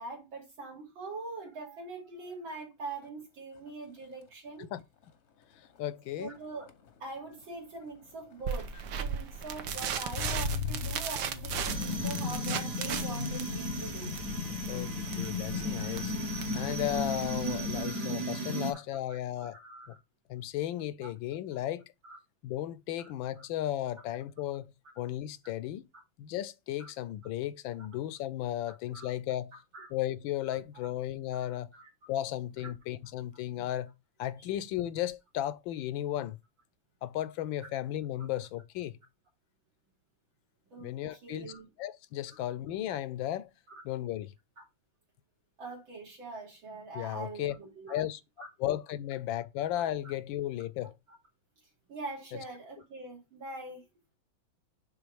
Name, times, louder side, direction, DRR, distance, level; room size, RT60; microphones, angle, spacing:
voice 1, 0.0-4.7 6.2-6.7 7.0-14.2 15.2-15.3 17.7-18.1 18.5-18.7 19.1-20.0 21.0-21.1 22.0-22.2 23.0-23.1 23.4-23.5 26.8-26.9 28.7-29.1 29.7-29.9 30.5-30.6 31.3-31.9 33.6-33.7 40.7-40.9 41.2-41.7 43.7-43.8 45.6-48.0 48.4-48.5 49.8-49.9 51.9-53.8, right 3 dB, 80° right, 3.9 m, -43 dB
Motor vehicle (road), 2.9-3.2 3.5-18.0 18.4-18.8, left 7 dB, 50° left, 0.8 m, -44 dB
voice 2, 5.8-6.3 14.5-16.1 16.5-19.6 19.9-20.0 20.3-21.8 22.4-24.7 25.0-25.8 26.2-29.5 29.9-31.7 32.1-33.9 34.2-36.4 37.0-39.0 40.8-41.5 41.8-43.5 43.8-44.3 46.9-47.6 47.9-48.2 48.6-50.9, left 13 dB, 80° left, 1.3 m, -35 dB
sound 1, 8.4-17.6, right 7 dB, 65° right, 1.3 m, -37 dB
sound 2, 11.7-18.7, left 1 dB, 50° right, 1.5 m, -34 dB
10.5 x 3.6 x 3.4 m
omnidirectional pair, 2.1 m